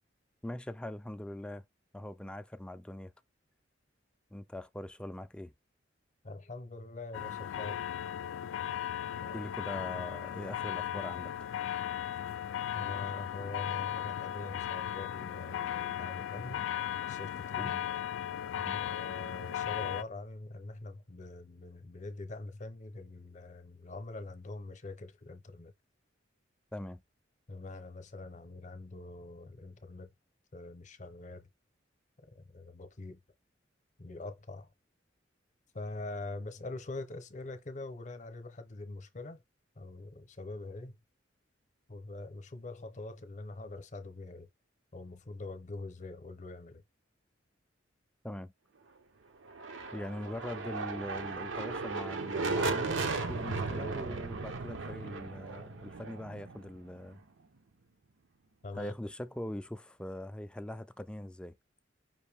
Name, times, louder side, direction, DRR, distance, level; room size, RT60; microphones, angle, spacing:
voice 1, 0.4-1.6 1.9-3.1 4.3-5.5 9.3-11.5 17.6-17.9 18.5-18.8 26.7-27.0 48.2-48.5 49.9-57.2 58.7-61.6, left 1 dB, 5° left, 0.3 m, -42 dB
voice 2, 6.2-7.8 9.2-9.4 12.7-16.7 17.1-17.7 18.7-25.7 27.5-30.1 30.5-31.5 32.3-33.2 34.0-34.7 35.7-39.4 39.8-41.0 41.9-44.5 44.9-46.8 58.6-58.9, left 2 dB, 40° left, 0.7 m, -44 dB
sound 1, 7.1-20.0, left 10 dB, 80° left, 0.3 m, -36 dB
sound 2, 49.5-57.2, right 3 dB, 85° right, 0.8 m, -36 dB
5.4 x 2.6 x 3.4 m
head